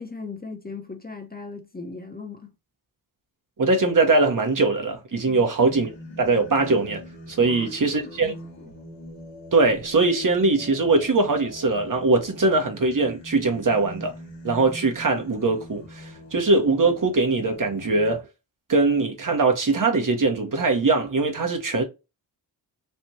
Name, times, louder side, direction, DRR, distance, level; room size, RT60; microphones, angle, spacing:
voice 1, 0.0-2.5 5.3-5.5 7.4-8.4 8.6-8.7, left 4 dB, 20° left, 1.0 m, -38 dB
voice 2, 3.6-5.9 6.2-7.0 7.3-8.3 9.5-14.1 14.4-18.2 18.7-21.8, right 3 dB, 45° right, 1.2 m, -21 dB
Singing, 5.6-18.2, equal, 70° left, 1.4 m, -42 dB
3.4 x 2.5 x 2.8 m
supercardioid pair, 45°, 45 cm